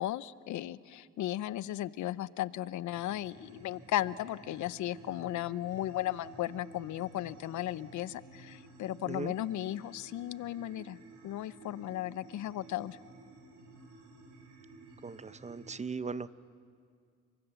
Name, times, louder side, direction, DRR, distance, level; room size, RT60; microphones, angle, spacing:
voice 1, 0.0-11.0 11.2-13.0, left 13 dB, 75° left, 18 dB, 0.6 m, -35 dB
sound 1, 2.9-15.8, right 3 dB, 85° right, 5.2 m, -53 dB
voice 2, 15.0-16.3, right 4 dB, 25° right, 16 dB, 0.6 m, -38 dB
29.5 x 23.0 x 7.0 m, 2.2 s
cardioid pair, 90°, 30 cm